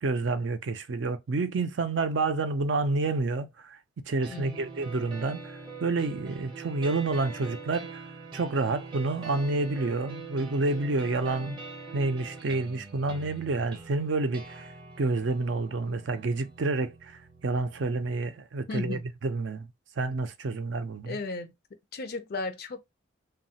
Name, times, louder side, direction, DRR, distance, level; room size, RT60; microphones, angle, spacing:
voice 1, 0.0-3.8 4.1-8.0 8.3-11.6 11.9-14.7 15.0-19.7 20.0-21.2, right 3 dB, 65° right, 0.5 m, -29 dB
sound 1, 4.2-18.2, right 3 dB, 25° right, 0.7 m, -44 dB
voice 2, 4.3-4.7 18.7-19.0 21.1-21.5 21.9-22.8, left 3 dB, 50° left, 0.4 m, -35 dB
3.0 x 2.3 x 2.7 m
head